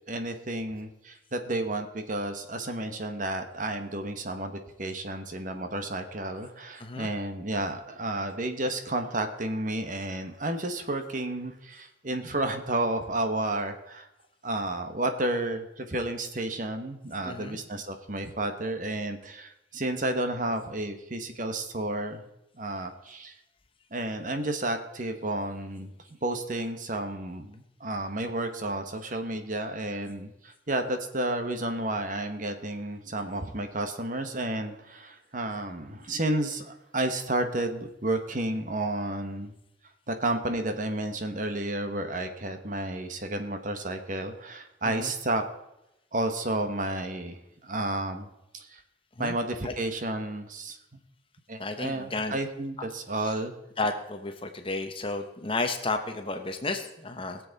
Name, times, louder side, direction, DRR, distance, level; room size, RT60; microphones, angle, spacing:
voice 1, 0.1-14.1 14.4-22.2 22.6-23.3 23.9-25.9 26.2-39.5 40.1-45.4 46.1-48.8 49.2-50.8 51.5-53.5, right 1 dB, 40° right, 7 dB, 1.2 m, -31 dB
voice 2, 17.2-17.6 44.8-45.1 49.2-49.3 49.6-49.7 51.6-52.4 53.8-57.4, left 3 dB, 30° left, 6 dB, 1.0 m, -32 dB
21.5 x 7.6 x 4.1 m, 0.88 s
head